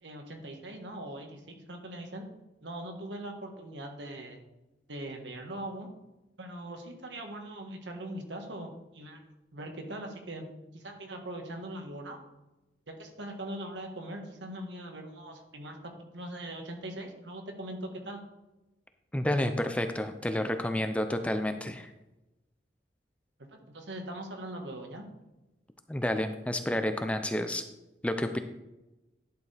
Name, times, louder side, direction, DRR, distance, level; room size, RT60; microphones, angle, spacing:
voice 1, 0.0-2.3 2.6-4.4 4.9-5.9 6.4-9.2 9.5-10.4 10.7-12.2 12.9-18.2 23.5-25.1, right 1 dB, 85° right, 3 dB, 1.5 m, -41 dB
voice 2, 19.1-21.9 25.9-27.6 28.0-28.4, left 1 dB, 5° left, 8 dB, 0.4 m, -30 dB
11.0 x 6.8 x 3.4 m, 0.99 s
head